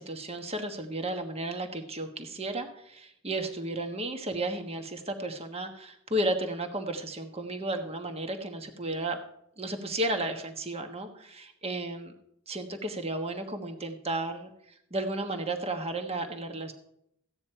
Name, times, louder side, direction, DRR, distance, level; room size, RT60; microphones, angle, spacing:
voice 1, 0.0-9.2 9.6-12.1 12.5-14.5 14.9-16.7, right 1 dB, 30° right, 6 dB, 1.3 m, -33 dB
15.5 x 9.6 x 4.6 m, 0.73 s
head